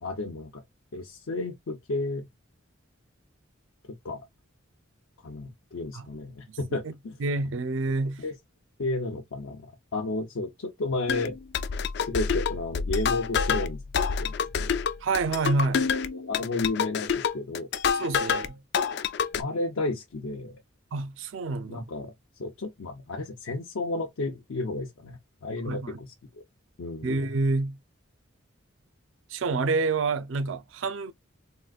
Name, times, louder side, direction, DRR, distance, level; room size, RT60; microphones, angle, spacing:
voice 1, 0.0-0.6 0.9-2.3 4.0-4.2 5.2-7.2 8.2-8.3 8.8-11.4 12.0-13.8 14.2-14.7 16.1-17.7 19.3-20.6 21.7-22.1 22.4-26.4 26.8-27.2, left 2 dB, 90° left, 0.6 m, -32 dB
voice 2, 7.2-8.2 15.0-15.9 18.0-18.6 20.9-21.9 25.7-26.0 27.0-27.8 29.3-31.1, right 3 dB, 70° right, 0.4 m, -28 dB
sound 1, 11.1-18.5 18.7-19.4, left 6 dB, 55° left, 0.3 m, -27 dB
3.7 x 2.4 x 2.2 m
head